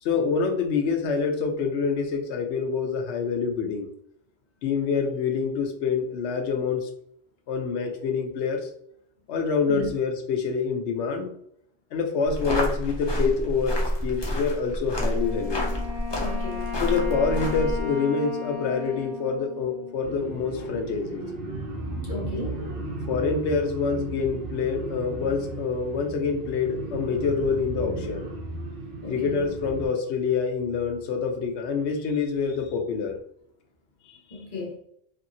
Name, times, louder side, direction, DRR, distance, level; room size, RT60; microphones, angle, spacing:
voice 1, 0.0-3.9 4.6-6.9 7.5-8.7 9.3-11.3 11.9-15.7 16.8-21.3 23.1-28.3 29.1-33.2 34.1-34.4, left 5 dB, 85° left, 4 dB, 0.9 m, -26 dB
sound 1, 12.3-17.8, equal, 30° left, 0.5 m, -28 dB
Wind instrument woodwind instrument, 15.0-20.4, left 6 dB, 90° right, 0.9 m, -36 dB
voice 2, 16.2-16.7 22.0-22.7 29.0-29.4 34.3-34.8, left 3 dB, 50° left, -3 dB, 1.1 m, -34 dB
sound 2, 20.0-29.9, right 2 dB, 60° right, 0.8 m, -35 dB
2.7 x 2.7 x 2.6 m, 0.68 s
omnidirectional pair, 1.1 m